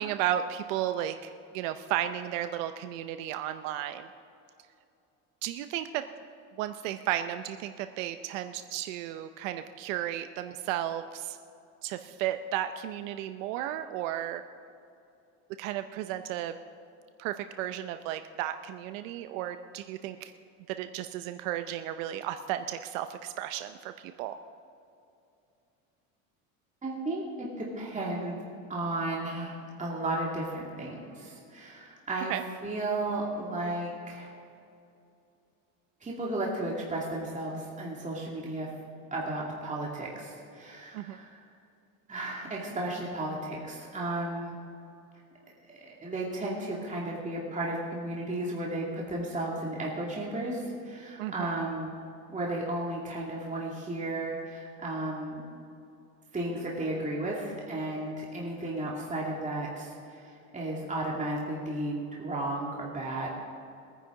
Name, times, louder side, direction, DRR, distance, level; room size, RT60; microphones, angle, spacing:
voice 1, 0.0-4.1 5.4-6.1 6.6-11.4 11.8-14.4 15.6-16.6 17.2-20.3 20.7-24.4 32.3-32.4 40.9-41.2 51.2-51.6, right 12 dB, 90° right, 9 dB, 0.7 m, -34 dB
voice 2, 26.8-28.4 28.7-34.3 36.0-38.7 39.1-41.4 42.1-44.5 45.7-51.9 52.3-55.4 56.3-63.3, right 2 dB, 20° right, -4 dB, 2.5 m, -34 dB
21.5 x 10.0 x 3.9 m, 2.6 s
supercardioid pair, 110°, 38 cm